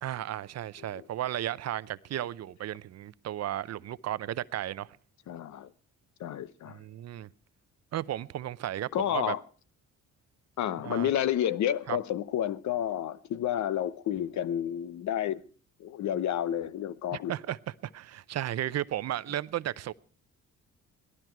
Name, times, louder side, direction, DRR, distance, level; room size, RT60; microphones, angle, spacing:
voice 1, 0.0-5.0 6.7-7.3 7.9-9.4 10.8-11.1 11.9-12.0 17.1-19.9, right 12 dB, 60° right, 0.6 m, -34 dB
voice 2, 5.3-5.7 6.2-6.8 8.9-9.4 10.6-15.4 15.8-17.3, left 10 dB, 70° left, 0.8 m, -30 dB
17.5 x 12.5 x 4.6 m
cardioid pair, 90°, 30 cm